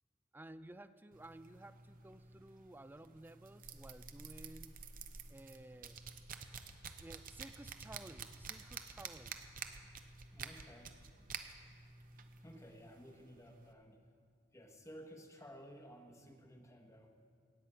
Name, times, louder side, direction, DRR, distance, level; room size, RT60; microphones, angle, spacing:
voice 1, 0.3-4.8 5.3-6.0 7.0-9.4, right 1 dB, 10° right, 13 dB, 0.3 m, -54 dB
sound 1, 1.1-13.7, right 6 dB, 40° right, 0.7 m, -51 dB
voice 2, 10.3-10.9 12.4-14.0 14.5-17.1, equal, 15° left, 4 dB, 1.0 m, -55 dB
16.5 x 6.1 x 8.8 m, 2.3 s
head